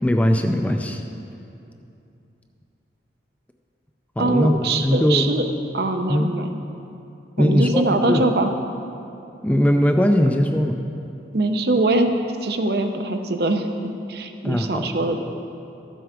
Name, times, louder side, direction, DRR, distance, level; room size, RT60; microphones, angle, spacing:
voice 1, 0.0-1.0 4.2-4.5 4.8-5.3 6.1-6.3 7.4-8.3 9.4-10.8 14.4-14.9, equal, 10° left, 4 dB, 0.4 m, -20 dB
voice 2, 4.2-5.4 5.7-6.5 7.4-8.5 11.3-12.1 12.4-15.2, right 2 dB, 60° right, 6 dB, 0.7 m, -22 dB
12.5 x 7.8 x 5.0 m, 2.7 s
head